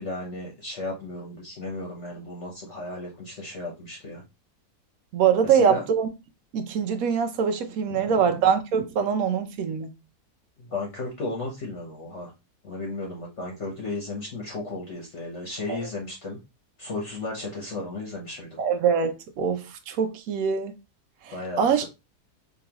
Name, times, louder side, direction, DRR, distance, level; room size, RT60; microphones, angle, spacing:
voice 1, 0.0-4.2 5.4-5.8 7.9-8.3 10.6-12.3 12.6-16.4 16.8-18.6 21.3-21.9, left 2 dB, 50° left, 1.2 m, -34 dB
voice 2, 5.1-6.1 6.5-9.9 15.7-15.8 18.6-20.7 21.2-21.8, right 7 dB, 65° right, 1.1 m, -23 dB
5.0 x 3.0 x 2.9 m
omnidirectional pair, 1.7 m